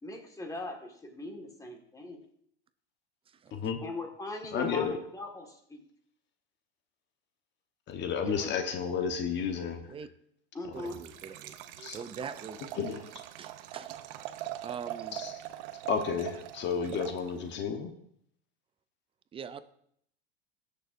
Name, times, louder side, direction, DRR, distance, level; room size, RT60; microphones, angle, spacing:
voice 1, 0.0-2.2 3.8-5.8 8.2-8.9 10.5-11.0, left 2 dB, 10° left, 3 dB, 1.7 m, -40 dB
voice 2, 3.3-3.6 9.7-10.1 10.7-12.6 13.4-14.0 14.6-15.2 19.3-19.6, right 7 dB, 20° right, 13 dB, 0.5 m, -43 dB
voice 3, 4.5-5.0 7.9-9.9 11.8-12.0 12.8-13.0 15.1-15.3 15.9-17.9, left 6 dB, 35° left, 6 dB, 1.1 m, -32 dB
Liquid, 10.7-17.6, right 13 dB, 60° right, 0.7 m, -43 dB
17.5 x 6.7 x 2.6 m, 0.68 s
hypercardioid pair, 110°, 30 cm